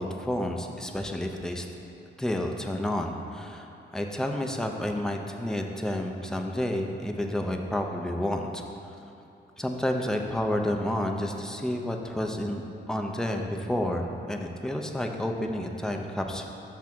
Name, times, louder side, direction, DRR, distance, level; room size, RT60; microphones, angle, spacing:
voice 1, 0.0-1.7 2.2-3.7 3.9-8.6 9.6-16.5, left 1 dB, 5° left, 2 dB, 0.5 m, -30 dB
6.3 x 3.6 x 5.9 m, 2.8 s
cardioid pair, 115°, 19 cm